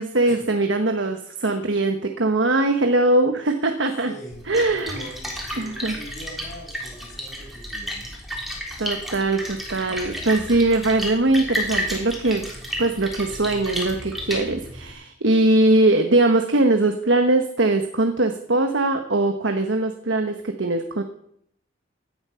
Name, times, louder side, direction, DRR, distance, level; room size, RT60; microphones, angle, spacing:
voice 1, 0.0-4.1 4.5-5.0 5.6-5.9 8.8-12.5 12.8-21.0, right 2 dB, 85° right, 6 dB, 1.4 m, -21 dB
voice 2, 4.0-8.1 9.6-10.2, equal, 40° left, -1 dB, 6.4 m, -42 dB
Splash splatter, 4.3-14.9, equal, ahead, 3.5 m, -32 dB
17.0 x 11.5 x 5.8 m, 0.68 s
head